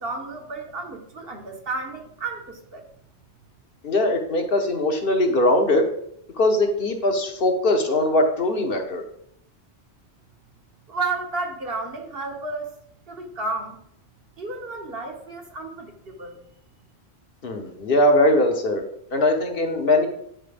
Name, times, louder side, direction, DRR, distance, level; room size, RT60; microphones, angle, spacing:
voice 1, 0.0-2.8 10.9-12.8 13.1-13.8 14.4-16.4, right 3 dB, 65° right, 3 dB, 1.3 m, -32 dB
voice 2, 3.8-5.9 6.4-9.0 17.4-18.8 19.1-20.1, left 1 dB, 60° left, 4 dB, 1.1 m, -21 dB
9.1 x 4.6 x 3.4 m, 0.72 s
omnidirectional pair, 1.1 m